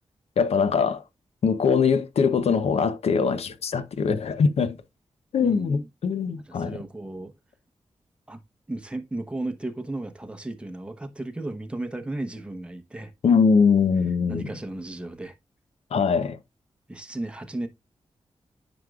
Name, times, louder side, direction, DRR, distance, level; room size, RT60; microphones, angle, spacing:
voice 1, 0.4-1.0 1.4-4.8 5.3-6.8 13.2-14.5 15.9-16.4, left 5 dB, 80° left, 0.7 m, -22 dB
voice 2, 5.4-5.9 6.5-7.3 8.3-8.4 8.7-13.1 14.3-15.3 16.9-17.7, right 2 dB, 10° right, 0.9 m, -34 dB
9.5 x 5.2 x 2.4 m
wide cardioid pair, 150°, 11 cm